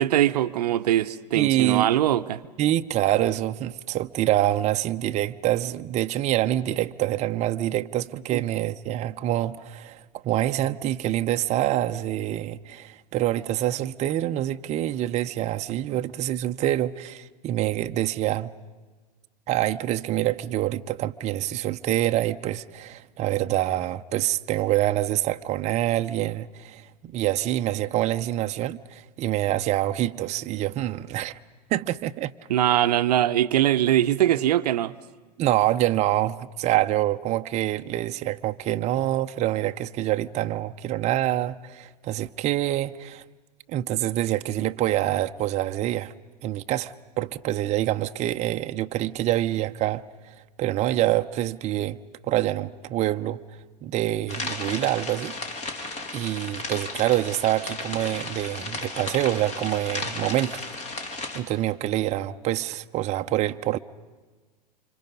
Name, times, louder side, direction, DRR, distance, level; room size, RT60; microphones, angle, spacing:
voice 1, 0.0-2.4 8.3-8.4 32.5-34.9, right 12 dB, 70° right, 0.8 m, -22 dB
voice 2, 1.3-1.9 2.6-18.5 19.5-31.4 31.7-32.3 35.4-43.2 43.7-46.1 46.4-50.0 50.6-52.0 52.3-53.4 53.8-55.4 56.1-60.6 61.3-63.8, right 14 dB, 35° right, 0.7 m, -26 dB
sound 1, 54.3-61.4, left 3 dB, 30° left, 3.3 m, -34 dB
29.5 x 26.0 x 5.4 m
hypercardioid pair, 100°, 21 cm